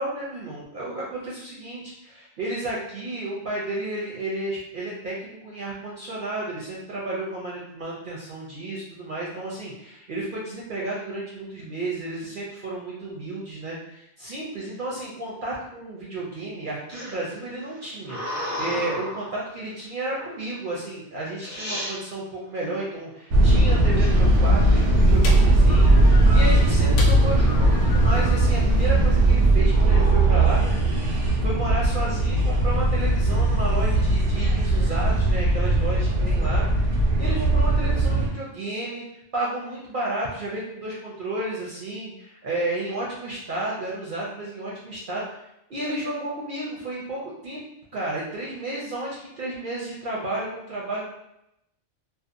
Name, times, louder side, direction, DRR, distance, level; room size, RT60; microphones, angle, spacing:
voice 1, 0.0-36.7 37.2-39.0 39.3-45.4 45.7-47.6 47.9-51.0, right 2 dB, 55° right, -5 dB, 0.6 m, -32 dB
sound 1, 16.9-19.4 20.2-20.6 21.1-21.2 21.4-22.0 24.0-25.6 26.0-26.5 26.8-28.0 28.4-28.9 29.7-30.7, left 1 dB, 15° left, 0.7 m, -35 dB
sound 2, 23.3-38.3, right 2 dB, 85° right, 1.0 m, -19 dB
sound 3, 24.1-29.3, left 3 dB, 75° left, 0.9 m, -37 dB
2.7 x 2.2 x 2.5 m, 0.81 s
omnidirectional pair, 1.2 m